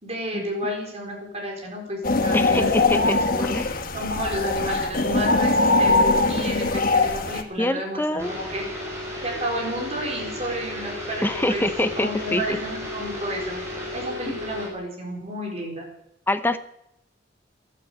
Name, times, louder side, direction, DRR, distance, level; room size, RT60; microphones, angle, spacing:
voice 1, 0.0-2.7 2.9-3.5 3.9-8.7 9.2-11.7 12.0-13.6 13.9-15.9, right 1 dB, 35° right, 0 dB, 4.3 m, -31 dB
sound 1, 2.0-7.4, left 3 dB, 50° left, 1.3 m, -21 dB
voice 2, 2.3-3.7 7.6-8.3 11.2-12.6 16.3-16.6, left 1 dB, 10° left, 10 dB, 0.8 m, -25 dB
sound 2, 8.2-14.7, left 1 dB, 15° right, 6.0 m, -34 dB
13.0 x 11.5 x 7.8 m, 0.79 s
head